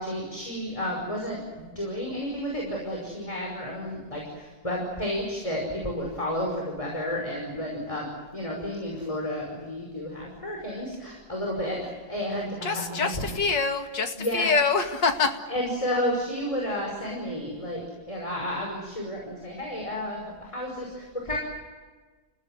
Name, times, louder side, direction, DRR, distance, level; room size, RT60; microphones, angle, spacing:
voice 1, 0.0-13.1 14.1-14.5 15.5-21.4, equal, 15° left, -1 dB, 5.7 m, -31 dB
voice 2, 12.6-15.4, left 4 dB, 70° left, 5 dB, 2.9 m, -25 dB
30.0 x 17.0 x 9.5 m, 1.4 s
omnidirectional pair, 2.0 m